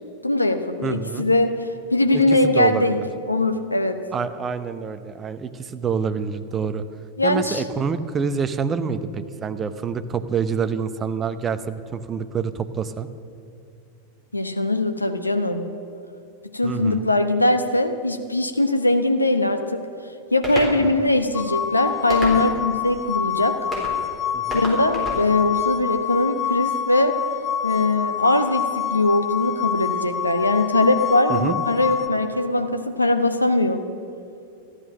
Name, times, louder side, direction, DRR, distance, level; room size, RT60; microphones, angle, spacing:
voice 1, 0.2-4.0 7.2-7.6 14.3-15.7 16.5-19.8 20.3-23.6 24.5-27.2 27.6-33.8, left 2 dB, 85° left, 7 dB, 0.9 m, -21 dB
voice 2, 0.8-1.3 2.1-3.1 4.1-6.8 7.2-13.1 16.6-17.0 20.8-20.9 24.3-24.6 31.3-31.6, right 6 dB, 20° right, 12 dB, 0.7 m, -27 dB
sound 1, 20.4-20.7 22.1-22.7 23.7-24.0 24.5-25.2, equal, 10° left, 3.9 m, -29 dB
sound 2, 21.3-32.1, left 9 dB, 30° left, 0.8 m, -27 dB
14.0 x 11.5 x 6.4 m, 2.5 s
figure-of-eight pair, 90°, 0 cm